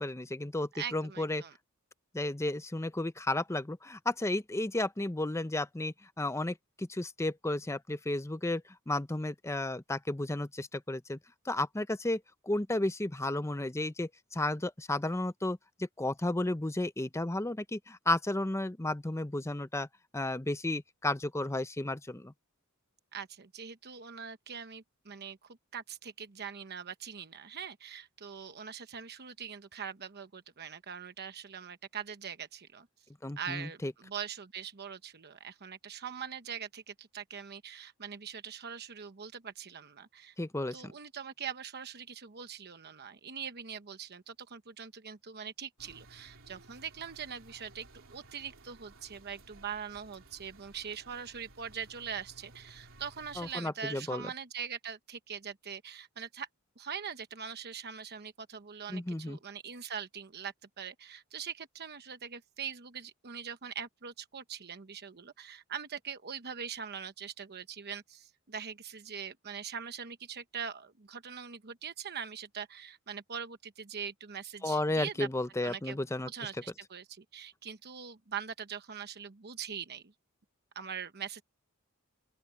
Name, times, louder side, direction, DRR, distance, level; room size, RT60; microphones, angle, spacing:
voice 1, 0.0-1.4 2.1-11.2 11.5-12.2 12.5-15.6 16.0-19.9 20.1-22.3 33.2-33.9 40.4-40.9 53.4-54.2 58.9-59.4 74.6-76.3, left 2 dB, 15° left, 0.7 m, -33 dB
voice 2, 0.7-1.5 23.1-32.9 33.4-40.3 40.7-56.5 56.8-75.3 75.6-80.1 80.7-81.4, right 7 dB, 50° right, 1.0 m, -42 dB
sound 1, 45.8-53.5, right 2 dB, 65° right, 3.4 m, -57 dB
open air
head